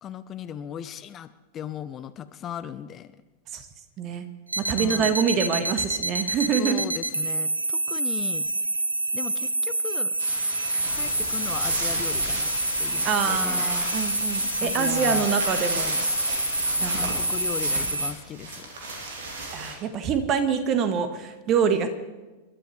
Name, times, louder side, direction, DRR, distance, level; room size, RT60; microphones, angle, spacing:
voice 1, 0.0-3.2 4.7-5.2 6.6-8.5 9.1-10.1 10.9-12.5 12.8-13.7 14.6-15.3 15.7-16.0 16.9-18.7, left 9 dB, 30° left, 13 dB, 0.6 m, -37 dB
voice 2, 4.0-4.3 4.6-6.8 13.0-15.9 16.8-17.1 19.5-21.9, right 7 dB, 35° right, 9 dB, 1.4 m, -25 dB
sound 1, 4.5-18.1, right 2 dB, 80° right, 0.6 m, -27 dB
sound 2, 10.2-19.7, right 3 dB, 60° right, 2.8 m, -36 dB
sound 3, 10.9-17.9, left 9 dB, 55° left, 2.0 m, -36 dB
29.0 x 12.0 x 3.3 m, 1.2 s
figure-of-eight pair, 90°, 0 cm